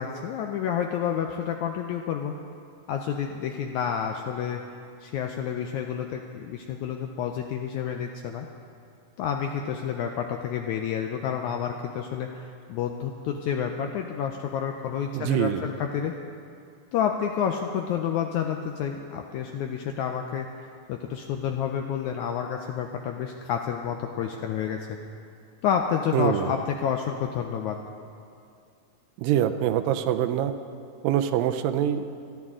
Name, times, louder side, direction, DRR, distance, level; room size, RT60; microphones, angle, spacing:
voice 1, 0.0-2.3 2.9-4.6 5.0-8.5 9.2-16.1 16.9-20.5 20.9-25.0 25.6-27.8, left 8 dB, 85° left, 3 dB, 1.7 m, -29 dB
voice 2, 15.1-15.6 26.1-26.5 29.2-30.5 31.0-32.1, right 11 dB, 85° right, 9 dB, 2.3 m, -24 dB
25.5 x 10.5 x 3.7 m, 2.4 s
omnidirectional pair, 4.0 m